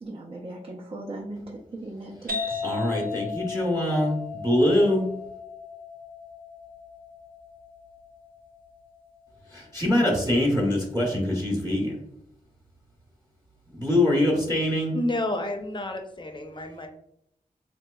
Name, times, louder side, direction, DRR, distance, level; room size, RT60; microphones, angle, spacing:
voice 1, 0.0-2.6, right 2 dB, 45° right, -4 dB, 0.6 m, -38 dB
sound 1, 2.3-9.7, left 5 dB, 85° right, 0.6 m, -37 dB
voice 2, 2.6-5.0 9.5-11.9 13.7-14.9, left 1 dB, 25° right, -3 dB, 0.9 m, -23 dB
voice 3, 14.9-16.9, left 1 dB, 35° left, 5 dB, 0.6 m, -30 dB
3.7 x 2.9 x 2.2 m, 0.75 s
wide cardioid pair, 95°, 15 cm